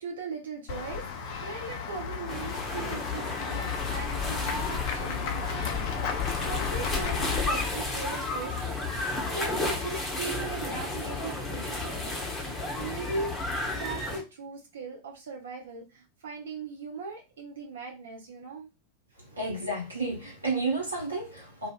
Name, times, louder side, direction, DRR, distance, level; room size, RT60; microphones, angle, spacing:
voice 1, 0.0-12.2 12.4-13.4 13.7-18.7, right 4 dB, 65° right, 0 dB, 0.7 m, -39 dB
Run / Walk footsteps / Bell, 0.7-7.4, left 6 dB, 45° left, 0.5 m, -34 dB
sound 1, 2.3-14.2, left 3 dB, 10° left, 0.8 m, -32 dB
voice 2, 19.2-21.7, right 3 dB, 80° right, -3 dB, 1.2 m, -31 dB
2.5 x 2.5 x 2.3 m, 0.27 s
figure-of-eight pair, 90°, 0 cm